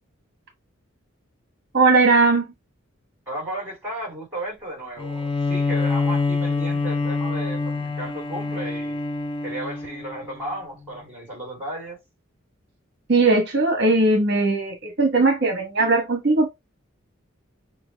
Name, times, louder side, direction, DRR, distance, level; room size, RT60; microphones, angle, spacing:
voice 1, 1.7-2.5 13.1-16.5, right 3 dB, 50° right, 1.1 m, -19 dB
voice 2, 3.3-9.0 9.4-12.0, right 1 dB, 10° right, 3.1 m, -34 dB
Bowed string instrument, 5.0-10.4, left 3 dB, 25° left, 0.4 m, -26 dB
6.7 x 2.3 x 3.4 m
head